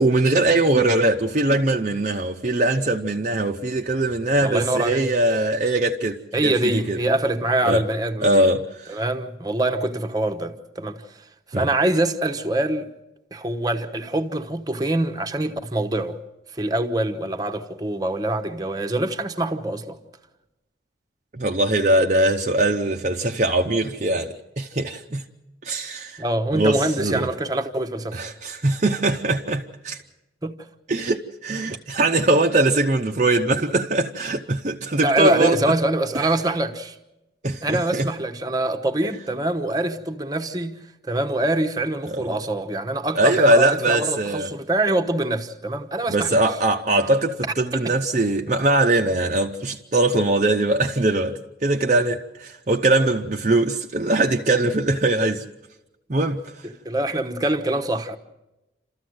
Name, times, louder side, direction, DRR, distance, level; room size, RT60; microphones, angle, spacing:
voice 1, 0.0-7.0 7.6-7.8 8.2-9.0 11.5-11.7 21.3-25.2 25.6-26.2 26.5-27.3 28.1-30.0 30.9-35.6 36.1-36.3 37.4-38.1 42.0-42.2 43.2-44.5 46.1-55.4 56.1-56.7, right 2 dB, 40° right, 0.7 m, -21 dB
voice 2, 4.4-5.1 6.3-8.4 8.9-11.2 11.5-12.9 13.3-16.2 16.5-20.0 26.2-28.2 30.4-30.7 31.7-31.8 35.0-37.0 37.6-40.8 41.1-46.4 47.8-47.9 56.8-58.2, right 2 dB, 20° right, 1.0 m, -24 dB
29.0 x 14.0 x 7.8 m
head